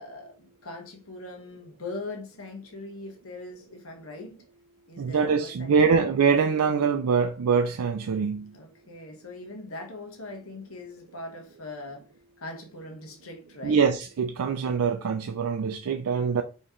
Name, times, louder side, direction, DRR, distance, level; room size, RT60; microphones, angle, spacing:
voice 1, 0.0-4.4 4.9-6.1 8.5-12.1 12.4-13.8, left 2 dB, 75° left, 1.3 m, -41 dB
voice 2, 5.0-8.5 13.6-16.4, right 5 dB, 90° right, 0.4 m, -24 dB
4.2 x 3.0 x 3.7 m
head